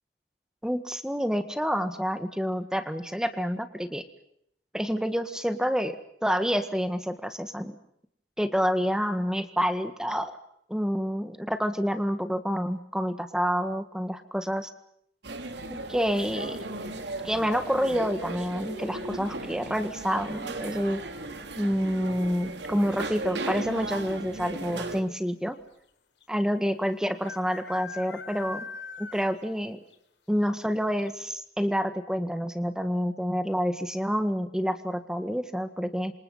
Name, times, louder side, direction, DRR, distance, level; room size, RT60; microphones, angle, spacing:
voice 1, 0.6-4.0 4.7-5.9 6.2-7.8 8.4-10.4 10.7-14.7 15.7-16.6 17.2-21.0 21.6-25.6 26.3-28.6 29.0-29.8 30.3-36.1, equal, 5° right, 10 dB, 1.6 m, -28 dB
sound 1, 15.2-25.0, right 2 dB, 80° right, 3.0 m, -36 dB
sound 2, 19.7-20.2 22.0-22.4 22.6-22.7 22.9-23.5 24.2-24.3 24.6-24.7 26.2-26.3 27.2-29.5 29.9-30.0 30.5-30.6 31.0-31.1, left 4 dB, 80° left, 3.6 m, -42 dB
27.5 x 26.5 x 5.6 m, 0.72 s
head